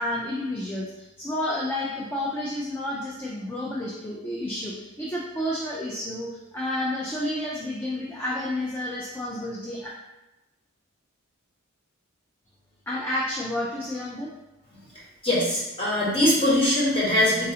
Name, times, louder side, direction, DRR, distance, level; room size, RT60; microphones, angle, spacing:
voice 1, 0.0-9.9 12.9-14.3, left 1 dB, 10° left, -5 dB, 0.3 m, -30 dB
voice 2, 15.2-17.5, left 1 dB, 25° left, -6 dB, 1.0 m, -22 dB
4.0 x 2.4 x 2.7 m, 0.99 s
head